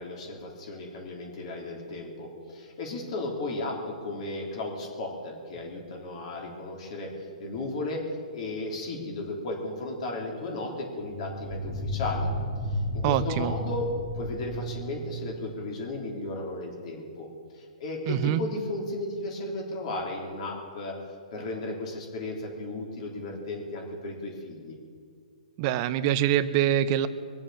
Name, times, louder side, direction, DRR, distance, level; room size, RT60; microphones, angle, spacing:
voice 1, 0.0-7.1 7.4-8.1 8.3-12.3 12.9-17.3 17.5-21.0 21.3-24.8, left 2 dB, 50° left, 1 dB, 3.4 m, -35 dB
sound 1, 5.6-5.7 11.0-15.5, equal, 30° left, 1.8 m, -33 dB
voice 2, 13.0-13.5 18.1-18.4 25.6-27.1, right 11 dB, 35° right, 13 dB, 0.7 m, -24 dB
22.5 x 7.6 x 7.1 m, 2.1 s
hypercardioid pair, 145°, 4 cm